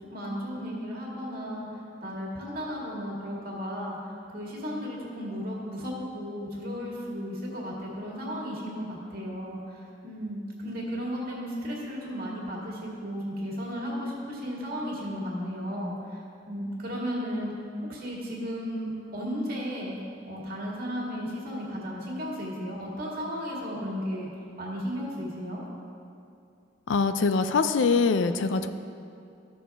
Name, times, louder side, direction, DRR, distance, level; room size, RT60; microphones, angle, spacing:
voice 1, 0.0-1.7 2.0-4.0 4.3-16.2 16.5-17.5 17.9-20.0 20.3-24.3 24.6-25.6, equal, 50° right, -4 dB, 2.1 m, -34 dB
voice 2, 26.9-28.7, left 4 dB, 80° left, 10 dB, 0.4 m, -23 dB
14.0 x 6.3 x 3.5 m, 2.5 s
head